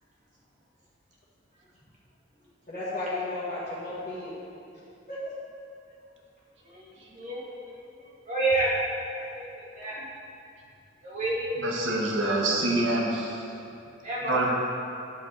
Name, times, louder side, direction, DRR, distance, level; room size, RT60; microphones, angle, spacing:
voice 1, 2.7-4.4 5.1-5.3, left 2 dB, 45° left, -12 dB, 1.8 m, -34 dB
voice 2, 6.6-8.7 9.1-10.1 11.0-12.0 12.2-12.3 14.0-14.5, right 2 dB, 40° right, -7 dB, 2.1 m, -31 dB
voice 3, 11.6-13.4 14.2-14.5, right 2 dB, 75° right, -2 dB, 1.5 m, -26 dB
10.5 x 7.4 x 4.1 m, 2.6 s
head